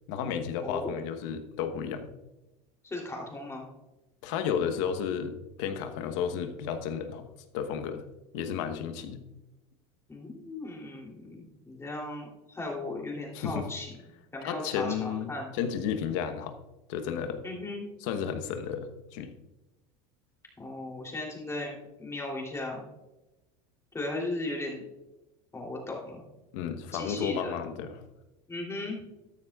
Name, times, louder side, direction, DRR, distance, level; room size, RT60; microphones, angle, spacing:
voice 1, 0.1-2.1 4.2-7.2 7.5-8.0 8.3-9.2 13.3-13.7 14.4-16.6 16.9-17.4 18.0-19.3 26.5-28.0, left 7 dB, 70° left, 8 dB, 1.1 m, -32 dB
voice 2, 0.6-1.0 2.8-3.7 10.1-13.9 14.3-15.5 17.4-17.9 20.6-22.8 23.9-24.8 25.5-26.2 26.9-27.5 28.5-29.0, left 2 dB, 15° left, -1 dB, 3.0 m, -36 dB
13.5 x 9.8 x 2.4 m, 1.0 s
supercardioid pair, 115°, 17 cm